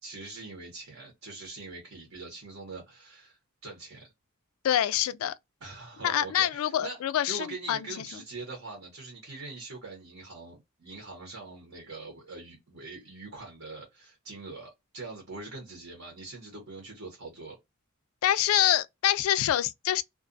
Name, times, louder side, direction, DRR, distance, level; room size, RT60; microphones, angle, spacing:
voice 1, 0.0-4.1 5.6-7.0 7.3-17.6, right 3 dB, 70° right, 1.0 m, -43 dB
voice 2, 4.6-5.3 6.0-7.8 18.2-20.0, left 11 dB, 80° left, 0.3 m, -26 dB
2.4 x 2.3 x 2.5 m
head